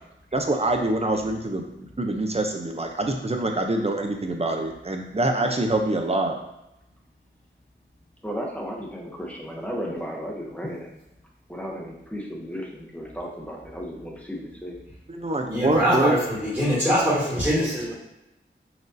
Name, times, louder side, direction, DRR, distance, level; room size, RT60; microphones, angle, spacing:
voice 1, 0.3-6.4 15.1-16.2, right 2 dB, 30° right, 4 dB, 0.6 m, -25 dB
voice 2, 8.2-10.9 11.5-14.8, equal, 5° left, -3 dB, 0.8 m, -34 dB
voice 3, 15.4-17.9, equal, 10° right, -8 dB, 1.3 m, -23 dB
5.9 x 2.4 x 2.6 m, 0.90 s
wide cardioid pair, 50°, 21 cm